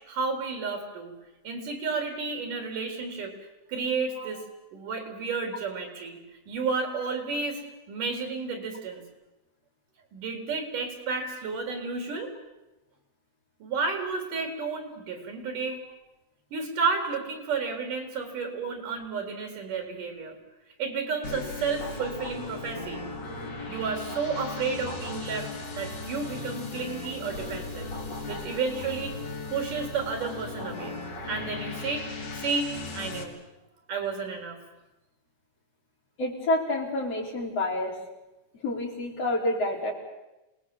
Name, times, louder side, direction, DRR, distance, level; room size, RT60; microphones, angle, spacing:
voice 1, 0.1-1.1 1.4-3.3 3.7-4.4 4.7-6.2 6.5-7.6 7.9-9.0 10.1-12.3 13.6-15.8 16.5-20.4 20.8-23.0 23.7-25.5 25.8-27.9 28.3-29.2 29.5-31.0 31.3-32.1 32.4-33.4 33.9-34.6, right 4 dB, 90° right, 4 dB, 5.3 m, -31 dB
sound 1, 21.2-33.2, left 3 dB, 75° left, 4.9 m, -37 dB
voice 2, 36.2-38.0 38.6-39.9, left 1 dB, 50° left, -1 dB, 5.2 m, -28 dB
27.0 x 19.5 x 7.7 m, 1.0 s
omnidirectional pair, 3.6 m